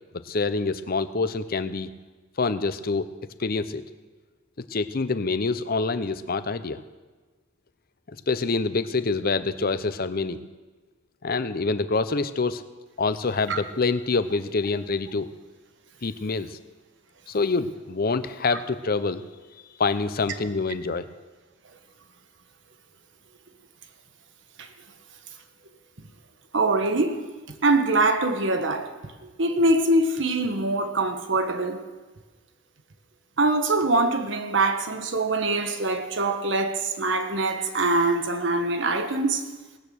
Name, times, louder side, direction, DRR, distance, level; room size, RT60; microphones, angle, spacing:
voice 1, 0.1-1.9 2.4-3.1 3.4-3.8 4.7-6.8 8.1-10.4 11.2-12.6 13.0-15.3 16.0-16.6 17.3-19.2 19.8-21.1, left 4 dB, 50° left, 13 dB, 0.6 m, -26 dB
voice 2, 26.5-27.2 27.6-28.9 29.2-31.8 33.4-39.4, right 2 dB, 65° right, 7 dB, 1.2 m, -23 dB
18.5 x 8.8 x 6.3 m, 1.3 s
head